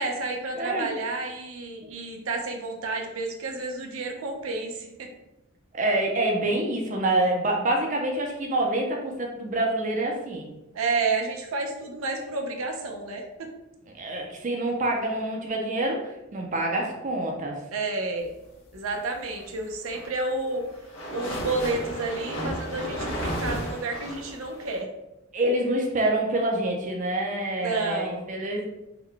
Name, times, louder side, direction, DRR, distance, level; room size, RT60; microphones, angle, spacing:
voice 1, 0.0-5.1 10.7-13.5 17.7-18.3 18.7-20.6 21.1-24.9 27.6-28.2, right 3 dB, 85° right, 3 dB, 0.6 m, -30 dB
voice 2, 0.5-0.9 1.8-1.9 5.7-10.5 13.9-17.6 25.3-28.7, right 1 dB, 40° right, 1 dB, 0.5 m, -26 dB
sound 1, 19.7-24.8, equal, 85° left, 0.9 m, -33 dB
3.8 x 2.2 x 3.3 m, 0.90 s
head